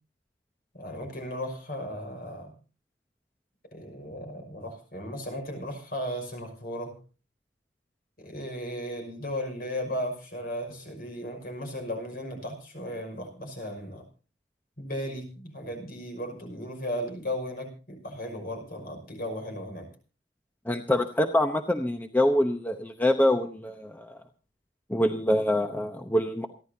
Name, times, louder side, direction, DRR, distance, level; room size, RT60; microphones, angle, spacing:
voice 1, 0.7-2.5 3.7-7.0 8.2-14.0 14.8-19.9, equal, 55° left, 3 dB, 5.9 m, -36 dB
voice 2, 20.7-24.1 24.9-26.5, left 1 dB, 10° left, 5 dB, 0.8 m, -25 dB
28.5 x 11.5 x 2.8 m, 0.36 s
head